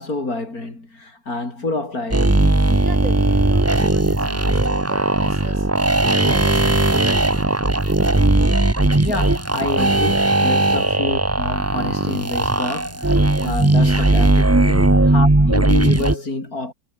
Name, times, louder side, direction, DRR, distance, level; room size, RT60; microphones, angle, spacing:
voice 1, 0.0-2.4 9.0-16.7, left 2 dB, 50° left, 6.4 m, -27 dB
sound 1, 2.1-16.2, right 2 dB, 15° right, 0.7 m, -17 dB
voice 2, 2.8-5.7 6.1-7.7, right 2 dB, 40° right, 4.9 m, -36 dB
omnidirectional pair, 2.0 m